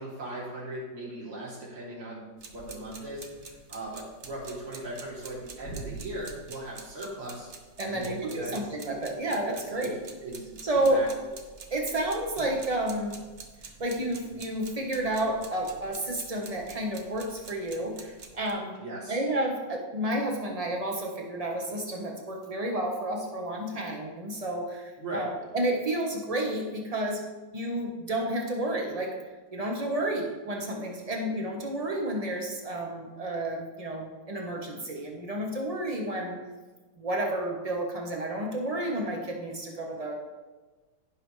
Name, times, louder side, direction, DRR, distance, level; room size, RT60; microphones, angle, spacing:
voice 1, 0.0-7.5 7.9-9.0 9.6-10.0 10.2-11.3 12.4-12.5 18.8-19.2 25.0-25.3, right 1 dB, 80° right, -7 dB, 4.1 m, -39 dB
sound 1, 2.4-18.5, right 4 dB, 50° right, 0.8 m, -47 dB
voice 2, 7.8-10.0 10.6-11.0 11.7-13.1 13.8-18.7 19.1-27.2 27.5-29.2 29.5-36.4 37.0-40.4, right 1 dB, 20° right, 0 dB, 1.0 m, -31 dB
15.5 x 6.0 x 3.3 m, 1.3 s
omnidirectional pair, 2.4 m